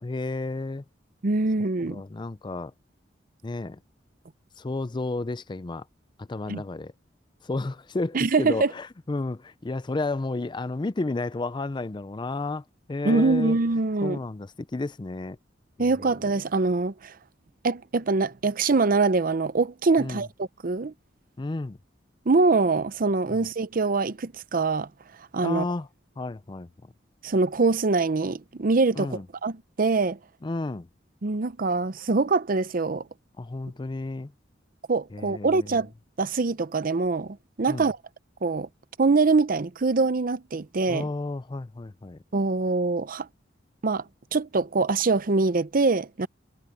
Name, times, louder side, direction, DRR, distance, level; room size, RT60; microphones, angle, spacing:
voice 1, 0.0-0.8 1.9-2.7 3.4-3.8 4.6-5.9 6.2-6.9 7.4-13.6 14.0-15.4 15.8-15.9 20.0-20.3 21.4-21.8 23.3-23.5 25.4-25.9 26.2-26.7 29.0-29.3 30.4-30.9 33.4-34.3 35.1-35.8 37.7-37.9 40.9-42.2, left 2 dB, 25° left, 0.4 m, -32 dB
voice 2, 1.2-2.0 6.5-6.6 8.1-8.7 13.0-14.2 15.8-17.1 17.6-20.9 22.3-24.9 25.3-25.6 27.2-30.2 31.2-33.1 34.9-35.9 36.2-38.0 38.4-38.7 39.0-41.1 42.3-43.3 43.8-44.0 44.3-46.3, right 3 dB, 50° right, 0.7 m, -24 dB
head